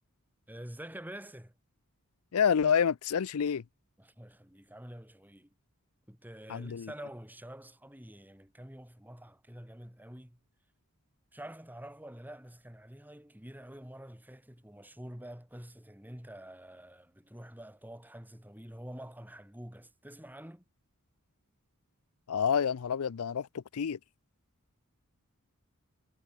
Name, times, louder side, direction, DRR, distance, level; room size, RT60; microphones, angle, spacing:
voice 1, 0.5-1.5 4.0-5.5 6.1-10.4 11.3-20.6, right 1 dB, 10° right, 3.5 m, -47 dB
voice 2, 2.3-3.6 6.5-6.9 22.3-24.0, left 7 dB, 75° left, 0.5 m, -28 dB
head